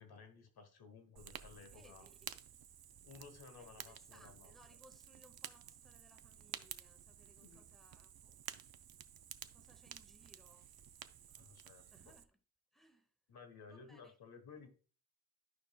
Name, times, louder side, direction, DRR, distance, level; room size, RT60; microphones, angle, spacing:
voice 1, 0.0-2.1 3.0-4.5 7.4-7.6 11.3-11.8 13.3-14.7, left 5 dB, 85° left, 1.3 m, -56 dB
Fire, 1.2-12.2, right 9 dB, 75° right, 0.6 m, -53 dB
voice 2, 1.7-2.2 3.6-8.4 9.5-10.7 11.9-12.4 12.7-13.1 13.7-14.1, equal, ahead, 0.9 m, -66 dB
11.0 x 5.4 x 2.3 m
wide cardioid pair, 115°, 37 cm